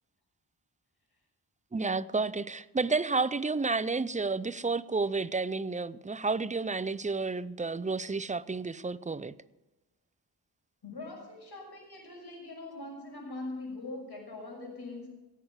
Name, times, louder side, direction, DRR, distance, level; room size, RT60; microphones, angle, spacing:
voice 1, 1.7-9.3, right 4 dB, 20° right, 0.5 m, -31 dB
voice 2, 10.8-15.1, left 2 dB, 70° left, 6.2 m, -42 dB
17.5 x 8.1 x 6.1 m
cardioid pair, 55°, 40 cm